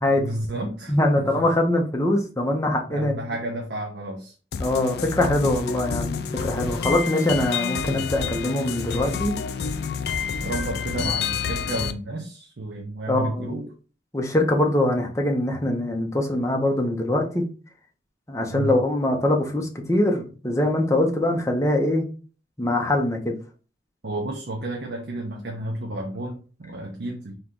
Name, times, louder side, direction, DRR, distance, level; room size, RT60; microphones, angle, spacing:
voice 1, 0.2-1.5 2.9-4.3 6.6-6.8 10.4-13.7 18.5-18.7 24.0-27.3, right 1 dB, 65° right, 1 dB, 0.6 m, -31 dB
voice 2, 0.9-3.1 4.6-9.3 13.1-13.6 14.1-17.5 18.3-22.0 22.6-23.3, left 1 dB, 15° left, 2 dB, 0.7 m, -23 dB
sound 1, 4.5-11.9, left 6 dB, 60° left, 0.3 m, -28 dB
3.7 x 2.9 x 3.6 m, 0.37 s
head